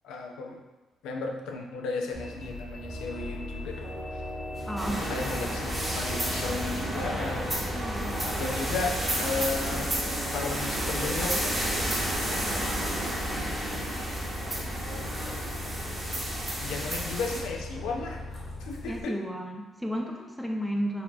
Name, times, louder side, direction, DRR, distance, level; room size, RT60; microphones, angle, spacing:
voice 1, 0.0-0.6 1.0-4.2 5.0-7.5 8.4-9.9 10.3-11.7 12.0-12.7 14.9-15.5 16.6-18.2 18.6-19.2, left 4 dB, 90° left, 1 dB, 0.4 m, -35 dB
Bus, 2.1-19.0, left 1 dB, 40° left, 1.3 m, -39 dB
sound 1, 2.7-13.5, equal, 50° right, 0.8 m, -44 dB
voice 2, 4.6-5.3 7.7-8.4 18.8-21.0, equal, 5° left, 1 dB, 0.4 m, -33 dB
sound 2, 4.8-17.4, right 1 dB, 20° right, 0.9 m, -31 dB
4.0 x 2.7 x 2.3 m, 1.2 s
cardioid pair, 90°, 0 cm